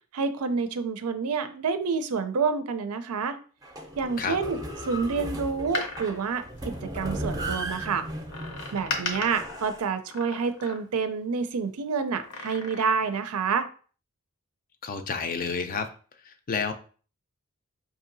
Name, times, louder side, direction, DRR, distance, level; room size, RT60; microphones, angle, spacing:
voice 1, 0.1-3.4 4.0-8.1 8.7-13.7, right 5 dB, 90° right, 10 dB, 0.5 m, -28 dB
sound 1, 3.6-9.8, right 1 dB, 15° right, 0.5 m, -36 dB
Door, 5.5-7.4 8.3-11.2 12.1-13.2 13.5-13.6, left 3 dB, 85° left, 0.8 m, -37 dB
voice 2, 14.8-15.9 16.2-16.7, left 5 dB, 40° left, 8 dB, 0.4 m, -30 dB
4.9 x 2.7 x 2.6 m, 0.40 s
head